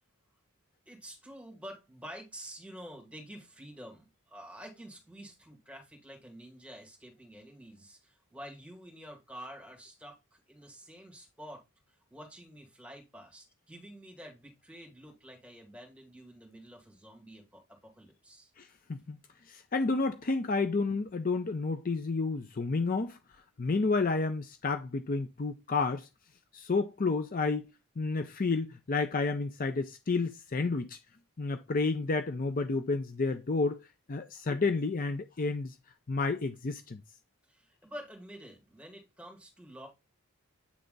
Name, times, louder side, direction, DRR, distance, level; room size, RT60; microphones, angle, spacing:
voice 1, 0.9-11.6 12.1-18.5 37.5-39.9, equal, 5° right, 2.2 m, -49 dB
voice 2, 18.6-19.2 19.5-23.2 23.6-26.1 26.5-27.6 28.0-31.0 31.4-33.8 34.1-35.7 36.1-37.0, left 3 dB, 40° left, 0.5 m, -30 dB
8.4 x 3.4 x 3.9 m
head